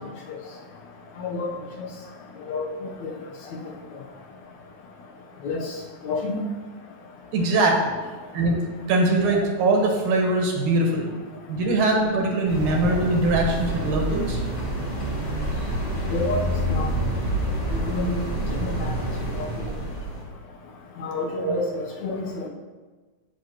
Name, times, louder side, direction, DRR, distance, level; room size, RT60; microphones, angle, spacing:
voice 1, 1.2-1.5 2.5-3.1 5.4-5.7 6.0-6.4 16.1-16.4 16.7-16.9 17.7-18.2 18.5-18.9 19.4-19.5 21.0-22.5, left 3 dB, 75° left, -1 dB, 2.4 m, -29 dB
voice 2, 7.3-7.9 8.3-8.6 8.9-11.1 11.5-14.4 21.4-21.5, right 2 dB, 80° right, 0 dB, 2.8 m, -22 dB
sound 1, 12.5-20.2, right 1 dB, 30° left, 1.9 m, -27 dB
14.5 x 5.8 x 3.0 m, 1.3 s
omnidirectional pair, 3.4 m